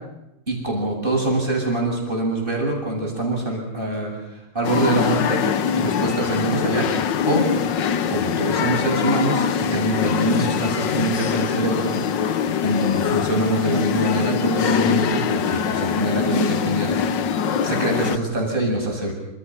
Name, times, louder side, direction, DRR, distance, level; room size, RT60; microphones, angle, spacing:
voice 1, 0.5-4.1 4.5-5.4 5.7-6.9 7.3-7.4 8.1-12.0 12.6-17.0 17.6-19.1, right 1 dB, 25° right, 0 dB, 8.1 m, -24 dB
sound 1, 4.6-18.2, left 7 dB, 60° left, 1.6 m, -23 dB
28.0 x 28.0 x 5.9 m, 0.89 s
omnidirectional pair, 2.3 m